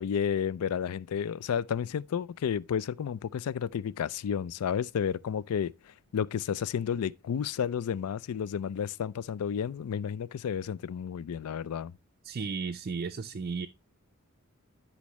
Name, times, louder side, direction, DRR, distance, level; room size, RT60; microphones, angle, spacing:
voice 1, 0.0-5.7 6.1-11.9, left 8 dB, 85° left, 0.4 m, -31 dB
voice 2, 12.2-13.7, right 5 dB, 40° right, 0.4 m, -34 dB
12.0 x 5.2 x 3.0 m
head